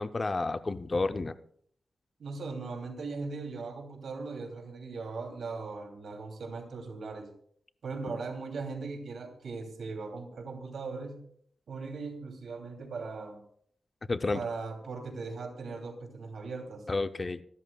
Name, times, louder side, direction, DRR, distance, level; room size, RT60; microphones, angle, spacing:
voice 1, 0.0-1.3 14.1-14.4 16.9-17.4, left 3 dB, 25° left, 11 dB, 0.5 m, -30 dB
voice 2, 2.2-7.3 7.8-11.2 11.7-13.4 14.3-16.8, right 4 dB, 80° right, 3 dB, 2.8 m, -39 dB
25.0 x 12.5 x 2.3 m, 0.62 s
wide cardioid pair, 170°, 0 cm